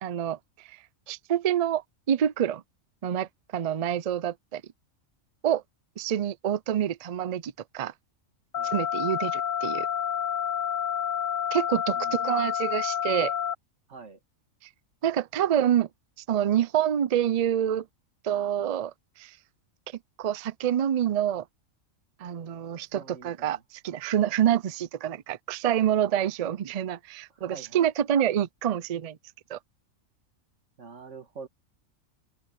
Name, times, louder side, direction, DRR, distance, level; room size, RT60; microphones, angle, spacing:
voice 1, 0.0-0.4 0.7-0.8 1.1-2.6 3.0-4.6 5.4-5.6 6.0-7.9 8.6-9.9 11.5-13.3 15.0-15.9 16.3-17.9 18.2-19.4 20.2-21.4 22.2-29.2 29.5-29.6, right 10 dB, 90° right, 0.3 m, -27 dB
sound 1, 8.5-13.5, left 9 dB, 75° left, 1.2 m, -29 dB
voice 2, 13.9-14.2 22.9-23.6 27.3-27.9 30.8-31.5, right 4 dB, 65° right, 2.0 m, -45 dB
open air
omnidirectional pair, 1.4 m